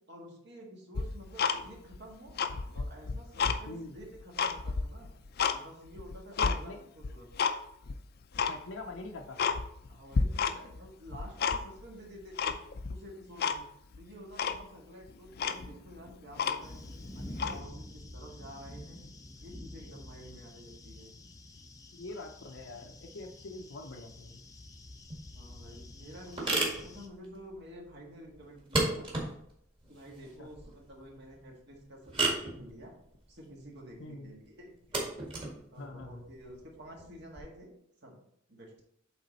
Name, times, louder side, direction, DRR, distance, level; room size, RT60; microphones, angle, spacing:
voice 1, 0.1-2.4 2.7-5.1 5.5-7.3 9.9-12.6 12.9-13.7 14.0-19.0 19.4-21.1 25.3-29.1 29.9-32.9 33.3-35.0 35.7-37.7 38.0-38.2 38.5-38.8, equal, 60° right, -1 dB, 1.7 m, -50 dB
Tick-tock, 1.0-2.0 2.3-3.6 4.0-5.6 6.0-6.6 7.0-7.6 7.9-8.0 8.3-8.6 9.0-9.1 9.4-9.9 10.1-10.8 11.1-11.9 12.4-13.0 13.4-13.6 13.9-14.0 14.4-14.6 15.1-15.2 15.4-16.9 17.3-17.6, left 6 dB, 55° left, 0.4 m, -30 dB
voice 2, 3.7-4.0 6.4-6.8 8.5-9.5 21.9-24.3 30.4-30.5 34.0-34.3 35.8-36.2, left 2 dB, 90° left, 0 dB, 0.7 m, -44 dB
sound 1, 16.6-27.1, left 1 dB, 20° left, 0.6 m, -48 dB
sound 2, 25.0-37.4, right 2 dB, 30° right, 1.8 m, -36 dB
8.3 x 3.7 x 4.1 m, 0.71 s
head